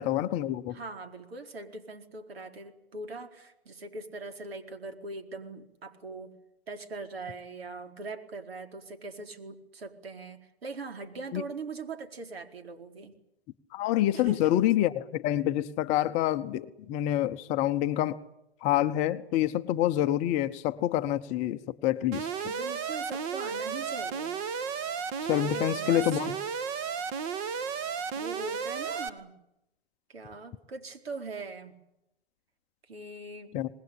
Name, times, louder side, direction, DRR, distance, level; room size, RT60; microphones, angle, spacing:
voice 1, 0.0-0.8 11.3-11.4 13.7-18.2 18.6-22.3 25.3-26.4 33.5-33.7, left 13 dB, 20° left, 0.9 m, -27 dB
voice 2, 0.7-6.3 6.7-13.1 14.1-14.4 22.4-24.4 25.4-26.4 28.1-29.4 30.1-31.8 32.9-33.5, right 3 dB, 70° right, 4.4 m, -41 dB
Alarm, 22.1-29.1, right 6 dB, 30° right, 1.7 m, -33 dB
25.5 x 20.5 x 8.6 m
hypercardioid pair, 135°, 31 cm